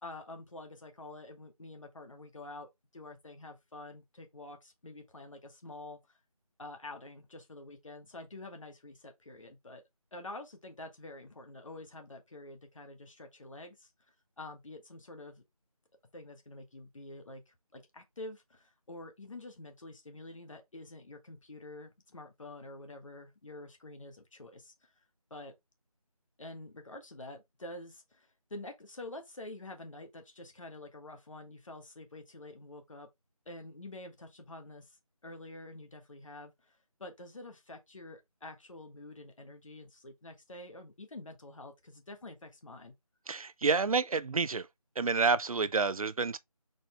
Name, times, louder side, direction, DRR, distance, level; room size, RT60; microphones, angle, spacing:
voice 1, 0.0-6.2 6.6-9.8 10.1-13.9 14.4-15.4 16.1-24.9 25.3-25.5 26.4-33.1 33.4-42.9, left 2 dB, 60° left, 1.4 m, -48 dB
voice 2, 43.3-44.7 45.0-46.4, right 4 dB, 70° right, 0.5 m, -29 dB
4.2 x 3.4 x 3.2 m
figure-of-eight pair, 170°, 19 cm